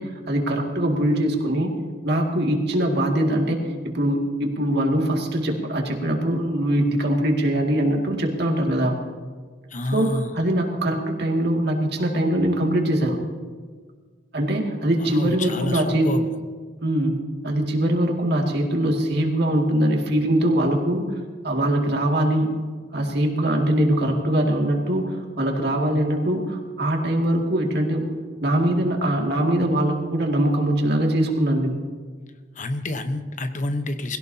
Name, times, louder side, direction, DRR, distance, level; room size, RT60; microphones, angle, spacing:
voice 1, 0.0-1.7 2.0-3.6 3.8-9.0 9.9-13.2 14.3-16.1 16.8-17.2 17.4-21.0 21.4-22.5 22.9-28.1 28.4-31.8, right 1 dB, 65° right, 1 dB, 2.2 m, -22 dB
voice 2, 9.7-10.4 15.0-16.2 32.5-34.2, left 2 dB, 45° left, 8 dB, 1.0 m, -28 dB
20.5 x 17.0 x 2.8 m, 1.5 s
head